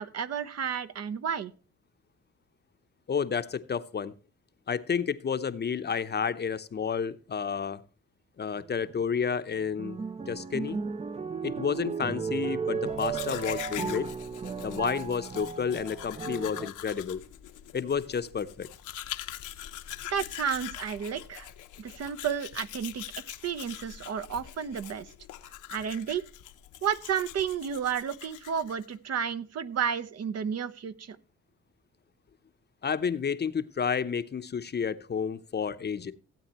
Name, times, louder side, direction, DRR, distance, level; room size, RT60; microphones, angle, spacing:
voice 1, 0.0-1.5 20.1-21.5 21.8-25.1 25.7-26.2 26.8-31.2, right 7 dB, 55° right, 13 dB, 0.9 m, -32 dB
voice 2, 3.1-4.1 4.7-7.8 8.4-10.0 10.3-10.8 11.4-14.1 14.6-17.2 17.7-18.7 32.8-36.1, left 6 dB, 35° left, 11 dB, 0.7 m, -30 dB
sound 1, 8.6-9.0 9.5-16.7, right 5 dB, 20° right, 0.5 m, -35 dB
Domestic sounds home sounds, 12.9-28.9, left 12 dB, 80° left, 0.9 m, -43 dB
16.0 x 8.3 x 3.0 m, 0.37 s
cardioid pair, 90°, 30 cm